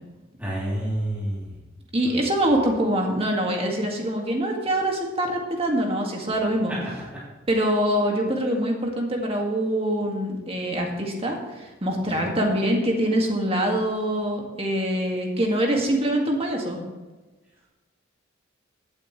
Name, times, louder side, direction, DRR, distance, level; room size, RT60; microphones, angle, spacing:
voice 1, 0.4-1.5 2.0-2.3 12.1-12.3, right 1 dB, 10° right, -9 dB, 3.1 m, -29 dB
voice 2, 1.9-6.7 7.5-16.8, right 1 dB, 30° right, 1 dB, 1.9 m, -24 dB
16.0 x 8.7 x 3.2 m, 1.2 s
head